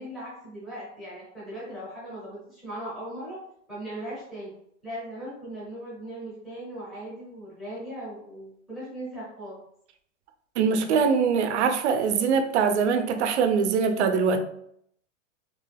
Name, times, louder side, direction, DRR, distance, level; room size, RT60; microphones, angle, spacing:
voice 1, 0.0-3.4 3.7-4.5 4.8-9.6, right 1 dB, ahead, 0.5 m, -38 dB
voice 2, 10.6-14.4, right 6 dB, 65° right, 0.5 m, -23 dB
2.9 x 2.2 x 3.2 m
supercardioid pair, 175°, 37 cm